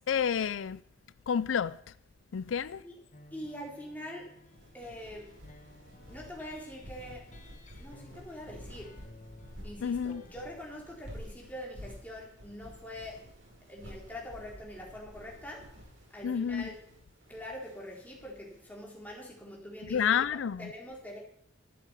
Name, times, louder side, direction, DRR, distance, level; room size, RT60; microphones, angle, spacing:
voice 1, 0.1-0.8 1.3-1.8 2.3-2.8 9.8-10.2 16.2-16.7 19.9-20.7, left 7 dB, 85° left, 0.4 m, -29 dB
sound 1, 3.1-10.6, left 2 dB, 40° left, 1.6 m, -55 dB
voice 2, 3.3-4.3 4.7-5.4 6.1-7.3 7.8-9.0 9.6-13.2 13.7-15.6 16.1-16.8 17.3-20.2 20.6-21.2, left 1 dB, 10° left, 4.1 m, -44 dB
sound 2, 4.4-18.6, equal, 75° right, 5.8 m, -51 dB
13.0 x 8.4 x 8.3 m
head